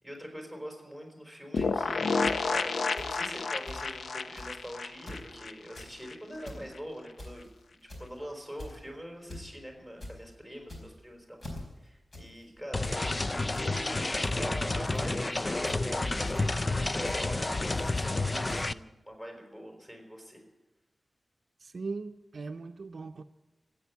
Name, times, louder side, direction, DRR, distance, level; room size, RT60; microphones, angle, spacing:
voice 1, 0.0-11.4 11.8-20.4, equal, 10° left, 1 dB, 4.6 m, -44 dB
sound 1, 1.5-6.2 6.4-6.5 6.8-6.9, left 4 dB, 85° left, 0.6 m, -31 dB
sound 2, 1.6-1.7 2.3-2.4 3.0-3.1 3.4-3.5 3.7-3.8 4.4-4.6 4.9-5.2 5.6-5.9 6.3-6.6 7.2-7.5 7.9-8.2 8.6-8.9 9.3-9.4 9.8-10.1 10.6-11.0 11.4-11.6 12.1-12.3 12.6-13.0 13.5-13.7 14.2-14.3 14.9-15.2 15.6-15.9 16.3-16.5 17.1-17.2 17.8-17.9 18.5-18.6, left 1 dB, 50° left, 4.4 m, -42 dB
sound 3, 12.7-18.7, left 2 dB, 25° left, 0.4 m, -30 dB
voice 2, 21.6-23.2, right 4 dB, 65° right, 7 dB, 0.6 m, -39 dB
15.5 x 8.8 x 9.4 m, 1.1 s
wide cardioid pair, 130°, 0 cm